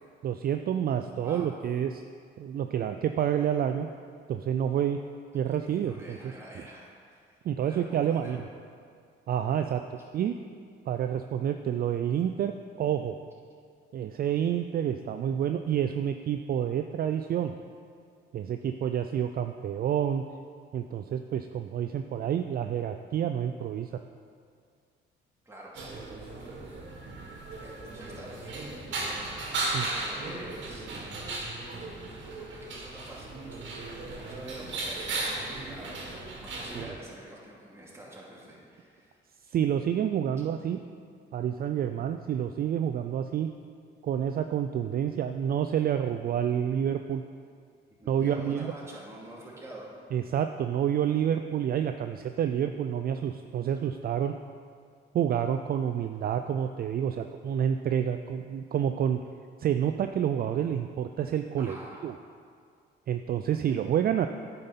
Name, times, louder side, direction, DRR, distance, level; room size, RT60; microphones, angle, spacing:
voice 1, 0.2-2.0 2.4-3.9 4.3-5.0 5.3-6.2 7.4-8.4 9.3-10.3 10.9-13.2 13.9-17.5 18.3-20.2 20.7-23.9 29.7-29.9 36.8-36.9 39.5-40.8 41.3-43.5 44.0-47.2 48.1-48.7 50.1-54.3 55.1-59.2 59.6-61.8 62.0-62.2 63.1-64.3, right 9 dB, 50° right, 7 dB, 0.4 m, -28 dB
voice 2, 1.2-1.5 5.7-8.4 25.4-25.7 27.4-28.7 29.7-31.3 32.2-39.2 48.0-49.9 61.6-62.0, right 1 dB, 15° right, -5 dB, 2.5 m, -47 dB
sound 1, 25.7-36.8, right 2 dB, 70° right, 1.7 m, -36 dB
9.4 x 5.3 x 5.7 m, 2.2 s
cardioid pair, 90°, 20 cm